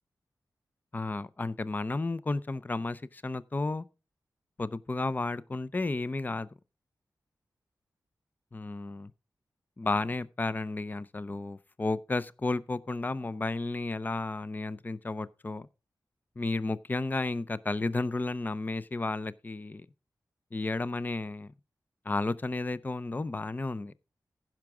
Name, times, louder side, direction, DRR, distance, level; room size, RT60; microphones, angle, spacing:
voice 1, 0.9-3.9 4.6-6.5 8.5-9.1 9.8-15.7 16.4-19.8 20.5-21.5 22.0-23.9, left 3 dB, 25° left, 0.5 m, -32 dB
15.5 x 6.0 x 3.6 m
wide cardioid pair, 100°, 7 cm